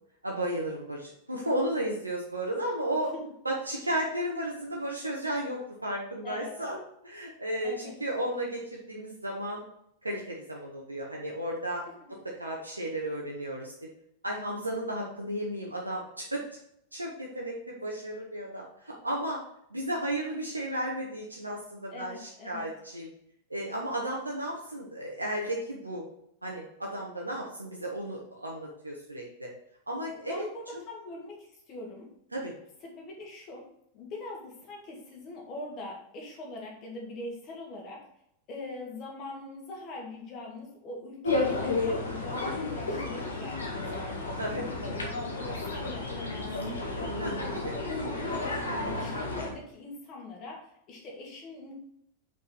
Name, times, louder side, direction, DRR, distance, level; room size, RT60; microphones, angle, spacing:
voice 1, 0.2-3.1 3.4-6.8 7.0-9.6 10.0-11.8 12.4-13.9 14.2-16.4 16.9-19.4 19.7-23.1 23.5-26.0 26.4-29.5 29.9-30.4 32.3-32.5 44.4-44.6 47.1-47.7, right 1 dB, 85° right, -2 dB, 1.3 m, -34 dB
voice 2, 6.2-6.6 7.6-8.0 12.0-12.1 21.9-22.7 30.3-32.1 32.8-33.7 33.9-38.1 38.5-46.8 47.9-48.7 49.0-51.7, left 2 dB, 35° left, -1 dB, 2.7 m, -42 dB
sound 1, 41.2-49.5, left 2 dB, 70° left, 1.7 m, -32 dB
5.7 x 5.3 x 5.5 m, 0.74 s
figure-of-eight pair, 90°, 0 cm